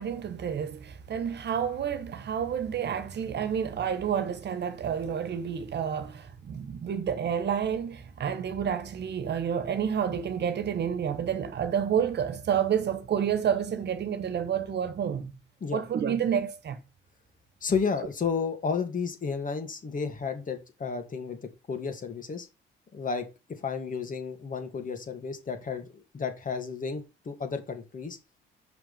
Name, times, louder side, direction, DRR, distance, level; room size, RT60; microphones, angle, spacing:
voice 1, 0.0-15.3 15.7-16.8, right 8 dB, 60° right, 1.3 m, -29 dB
voice 2, 17.6-21.4 21.7-22.5 22.9-28.2, left 5 dB, 40° left, 2.4 m, -32 dB
6.3 x 5.8 x 7.3 m
cardioid pair, 90°, 20 cm